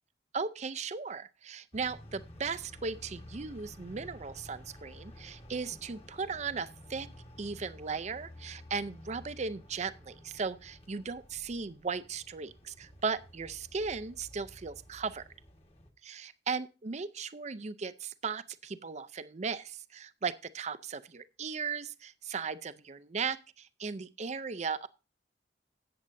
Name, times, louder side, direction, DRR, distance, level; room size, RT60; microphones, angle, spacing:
voice 1, 0.3-7.1 7.4-15.2 16.0-24.9, right 5 dB, 40° right, 0.5 m, -37 dB
sound 1, 1.7-15.9, left 1 dB, 35° left, 1.4 m, -52 dB
13.5 x 8.6 x 2.6 m
head